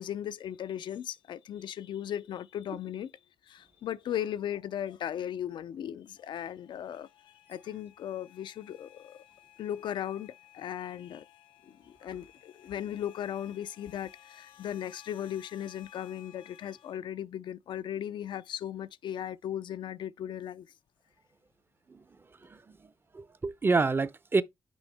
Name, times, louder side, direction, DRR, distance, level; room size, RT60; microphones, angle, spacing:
voice 1, 0.0-3.1 3.5-7.1 7.5-9.2 9.6-11.3 11.6-20.7, left 10 dB, 70° left, 0.4 m, -37 dB
sound 1, 6.2-17.0, left 12 dB, 85° left, 1.6 m, -57 dB
voice 2, 22.4-22.8 23.1-24.4, right 3 dB, 25° right, 0.6 m, -28 dB
6.2 x 5.2 x 3.3 m
cardioid pair, 90°, 8 cm